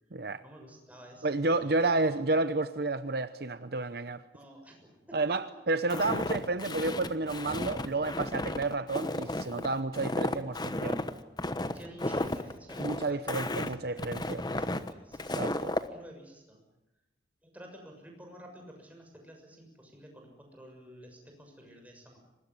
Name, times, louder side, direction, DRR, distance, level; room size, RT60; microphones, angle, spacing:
voice 1, 0.4-2.3 4.3-5.4 11.7-16.6 17.4-22.2, equal, 10° right, 6.7 m, -51 dB
voice 2, 1.2-4.2 5.1-11.0 12.8-14.4 15.4-15.7, right 3 dB, 60° right, 0.8 m, -31 dB
Walk footsteps, 5.9-15.9, left 1 dB, 25° left, 1.1 m, -33 dB
24.0 x 20.5 x 9.8 m
head